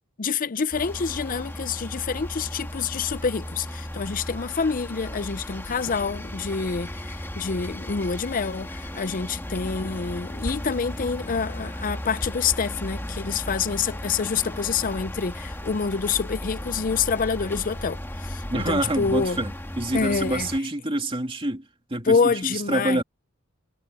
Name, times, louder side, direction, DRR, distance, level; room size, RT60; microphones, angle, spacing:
voice 1, 0.2-19.4 19.9-20.5 22.1-23.0, left 5 dB, 40° left, 0.5 m, -27 dB
sound 1, 0.7-20.6, equal, 10° left, 1.7 m, -35 dB
voice 2, 18.5-21.6 21.9-23.0, right 1 dB, 25° right, 2.7 m, -27 dB
head